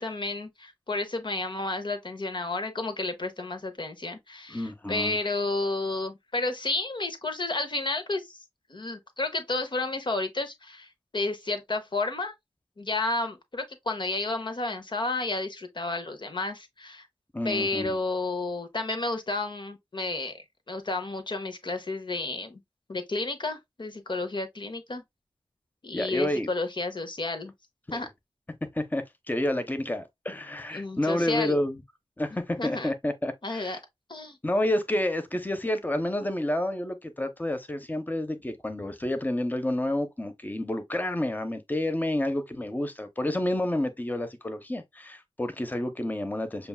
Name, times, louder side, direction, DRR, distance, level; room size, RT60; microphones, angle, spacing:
voice 1, 0.0-8.4 8.7-12.3 12.8-17.1 17.4-22.6 22.9-25.0 25.8-27.5 27.9-28.1 30.7-31.6 32.6-32.9 33.4-33.8 34.1-34.4, left 2 dB, 50° left, 0.7 m, -31 dB
voice 2, 4.5-5.2 17.3-17.9 25.9-26.5 28.5-31.8 32.2-33.8 34.4-46.7, left 1 dB, 15° left, 0.8 m, -29 dB
6.8 x 2.3 x 2.3 m
cardioid pair, 40°, 10 cm